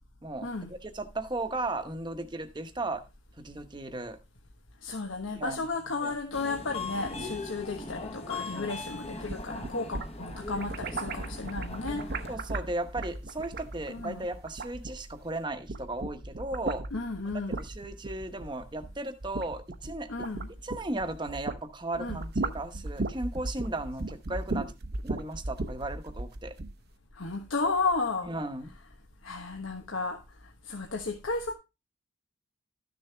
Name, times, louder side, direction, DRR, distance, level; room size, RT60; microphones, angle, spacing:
voice 1, 0.2-3.0 3.4-4.2 5.4-5.6 6.0-6.1 12.3-16.8 17.5-20.3 20.6-24.7 25.0-26.5 28.2-28.7, right 2 dB, 20° right, 1.0 m, -36 dB
voice 2, 4.8-12.1 13.9-14.3 16.9-17.6 20.1-20.5 22.0-22.2 27.2-28.3 29.2-30.2 30.7-31.5, left 3 dB, 80° left, 1.2 m, -33 dB
Subway metro underground, 6.3-12.4, left 3 dB, 30° left, 1.0 m, -40 dB
sound 1, 9.1-15.3 15.6-21.6 21.9-26.8, right 2 dB, 50° right, 0.8 m, -36 dB
13.0 x 6.7 x 3.3 m
head